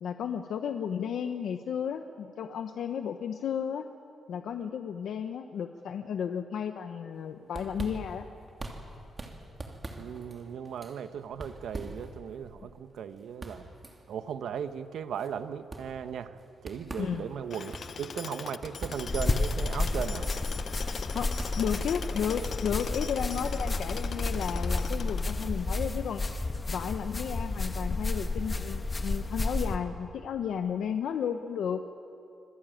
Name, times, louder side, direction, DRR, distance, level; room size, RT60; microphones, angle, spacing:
voice 1, 0.0-3.8 4.3-8.3 17.0-17.2 21.1-21.3 21.6-26.2 26.7-31.8, left 8 dB, 75° left, 6 dB, 1.0 m, -33 dB
sound 1, 7.2-22.1, right 2 dB, 20° right, 2.8 m, -45 dB
voice 2, 10.0-13.7 14.1-17.7 18.0-20.3, right 8 dB, 75° right, 10 dB, 1.1 m, -37 dB
Tools, 17.5-25.8, left 6 dB, 45° left, 0.7 m, -41 dB
sound 2, 19.1-29.8, left 2 dB, 20° left, 1.2 m, -31 dB
26.0 x 22.0 x 9.2 m, 2.7 s
wide cardioid pair, 165°, 0 cm